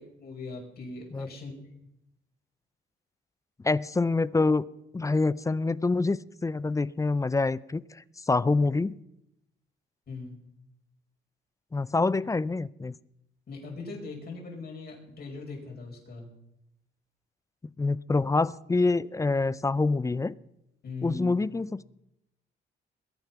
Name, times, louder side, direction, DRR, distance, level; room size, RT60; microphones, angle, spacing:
voice 1, 0.0-1.5 10.1-10.4 13.5-16.3 20.8-21.4, left 3 dB, 50° left, 0 dB, 5.8 m, -40 dB
voice 2, 3.6-4.6 4.9-9.0 11.7-12.9 17.8-20.3 21.0-21.8, left 3 dB, 15° left, 19 dB, 0.4 m, -26 dB
21.5 x 9.1 x 5.9 m, 0.84 s
cardioid pair, 90°, 20 cm